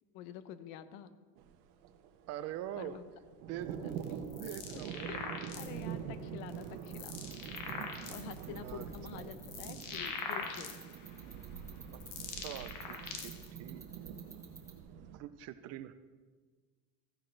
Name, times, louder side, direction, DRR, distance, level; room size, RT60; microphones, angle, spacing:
voice 1, 0.1-1.1 2.8-3.0 3.5-4.0 4.7-4.8 5.1-5.3 5.5-7.2 8.1-10.7, left 10 dB, 90° left, 12 dB, 0.8 m, -48 dB
sound 1, 1.4-15.2, right 8 dB, 85° right, 0.9 m, -45 dB
voice 2, 2.3-3.0 3.5-3.9 4.4-5.1 8.6-8.9 9.1-9.3 11.9-12.0 12.3-13.3 13.6-13.9 15.1-15.9, right 12 dB, 40° right, 12 dB, 0.4 m, -44 dB
sound 2, 3.9-5.9 6.5-8.4 9.0-11.1 11.7-13.5, left 5 dB, 55° left, 1.3 m, -42 dB
sound 3, 7.3-14.8, right 4 dB, 10° right, 1.1 m, -51 dB
14.5 x 10.0 x 3.2 m, 1.4 s
cardioid pair, 170°, 39 cm